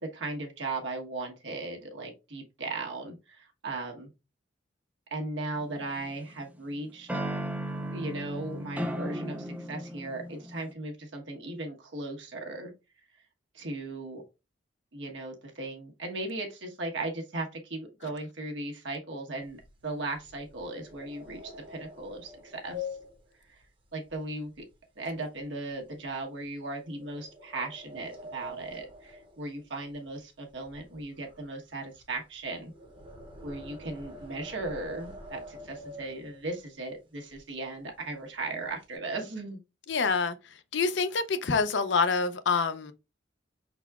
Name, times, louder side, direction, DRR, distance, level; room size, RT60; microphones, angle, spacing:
voice 1, 0.0-4.1 5.1-7.1 7.9-12.7 13.5-14.2 14.9-19.6 19.8-22.9 23.9-24.6 25.0-32.7 33.4-39.6, right 2 dB, 70° right, 1.2 m, -37 dB
sound 1, 5.6-6.4 7.1-10.7, right 1 dB, 10° right, 0.4 m, -35 dB
sound 2, 19.4-24.8 25.1-25.4 25.9-26.0 26.9-30.2 30.4-36.7 37.3-37.4 37.7-38.0 38.3-38.9, left 3 dB, 25° right, 0.9 m, -46 dB
voice 2, 39.9-40.4 40.7-42.9, left 4 dB, 70° left, 0.6 m, -26 dB
5.7 x 4.0 x 2.4 m
head